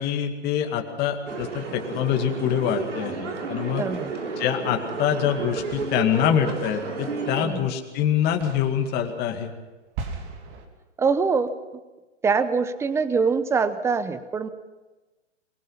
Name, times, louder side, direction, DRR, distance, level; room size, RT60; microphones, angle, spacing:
voice 1, 0.0-3.8 4.4-9.5, left 9 dB, 25° left, 4 dB, 2.1 m, -25 dB
sound 1, 1.1-3.0 3.6-4.5 5.3-8.0 8.4-10.7, right 4 dB, 30° right, 2.8 m, -42 dB
sound 2, 1.3-7.4, right 4 dB, 75° right, 3.9 m, -32 dB
voice 2, 3.8-4.1 7.4-7.7 11.0-11.5 12.2-14.5, right 5 dB, 5° right, 13 dB, 0.7 m, -23 dB
23.5 x 20.5 x 5.7 m, 1.2 s
hypercardioid pair, 130°, 36 cm